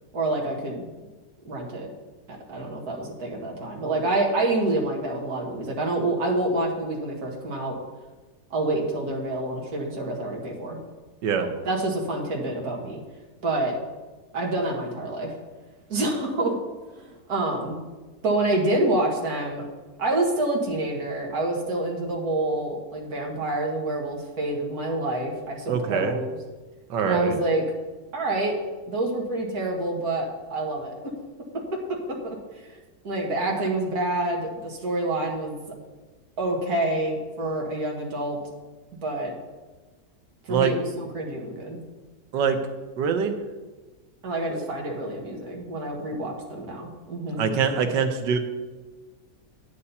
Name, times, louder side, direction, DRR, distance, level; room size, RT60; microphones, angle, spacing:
voice 1, 0.1-0.9 1.4-1.9 2.5-7.7 8.5-10.8 11.4-13.0 13.4-13.7 14.3-15.4 15.9-16.5 17.0-17.8 18.2-19.6 20.0-26.4 27.0-27.6 28.1-28.6 28.9-30.9 32.2-32.4 33.0-35.6 36.4-38.4 39.0-39.3 40.5-41.8 44.2-47.4, right 2 dB, 60° right, -1 dB, 2.2 m, -27 dB
voice 2, 25.7-26.2 26.9-27.4 40.5-40.7 42.3-42.6 43.0-43.4 44.5-44.7 47.4-48.4, right 6 dB, 90° right, 7 dB, 1.6 m, -24 dB
9.7 x 8.4 x 4.2 m, 1.2 s
omnidirectional pair, 1.9 m